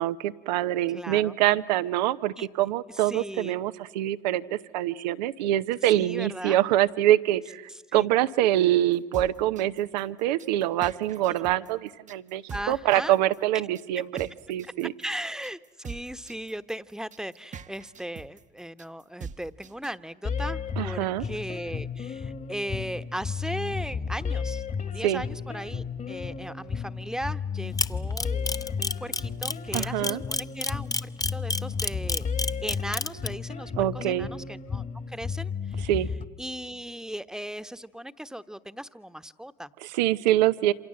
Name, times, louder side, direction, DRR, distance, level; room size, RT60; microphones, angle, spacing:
voice 1, 0.0-7.6 7.9-14.9 20.8-21.2 25.0-25.2 29.7-30.2 33.8-34.3 35.9-36.1 39.8-40.7, right 13 dB, 90° right, 15 dB, 0.8 m, -25 dB
voice 2, 0.9-1.3 2.4-2.5 2.9-3.6 5.9-6.6 7.7-8.1 12.5-13.2 15.0-35.9 36.4-39.7, equal, 5° right, 12 dB, 1.1 m, -38 dB
sound 1, 8.9-19.9, right 6 dB, 35° right, 1.0 m, -42 dB
sound 2, 20.2-36.2, left 6 dB, 40° left, 1.7 m, -33 dB
Camera, 27.8-33.3, left 3 dB, 15° left, 0.8 m, -27 dB
27.5 x 27.0 x 7.7 m, 1.2 s
hypercardioid pair, 70°, 21 cm